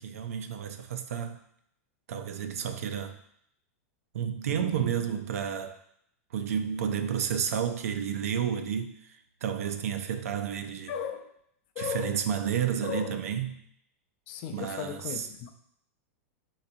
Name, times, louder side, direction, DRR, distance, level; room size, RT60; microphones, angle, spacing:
voice 1, 0.0-1.4 2.1-3.2 4.1-5.8 6.3-10.9 11.8-13.5 14.5-15.0, right 8 dB, 80° right, 0.5 m, -31 dB
voice 2, 10.9-11.3 11.7-12.2 12.8-13.1 14.3-15.5, left 8 dB, 50° left, 0.5 m, -36 dB
4.4 x 4.0 x 2.6 m
hypercardioid pair, 125°, 8 cm